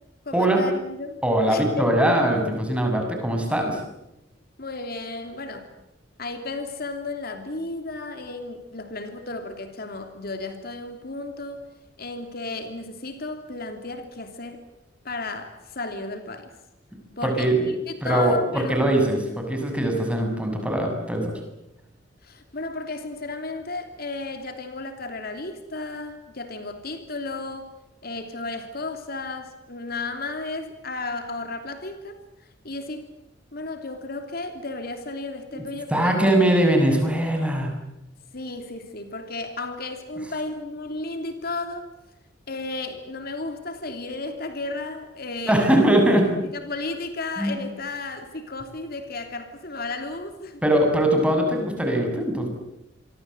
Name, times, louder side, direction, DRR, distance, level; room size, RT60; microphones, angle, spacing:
voice 1, 0.2-1.2 1.5-1.9 4.6-5.7 6.2-11.6 12.0-14.6 15.0-16.5 17.2-18.9 22.2-27.7 28.0-33.0 33.5-36.2 38.3-41.9 42.5-45.7 46.5-50.6, left 3 dB, 55° left, 7 dB, 3.0 m, -33 dB
voice 2, 1.2-3.8 17.2-17.7 18.0-21.3 35.5-35.6 35.9-37.7 45.5-46.3 47.4-47.6 50.6-52.5, right 1 dB, 5° right, 3 dB, 7.0 m, -21 dB
28.0 x 24.0 x 7.9 m, 0.88 s
head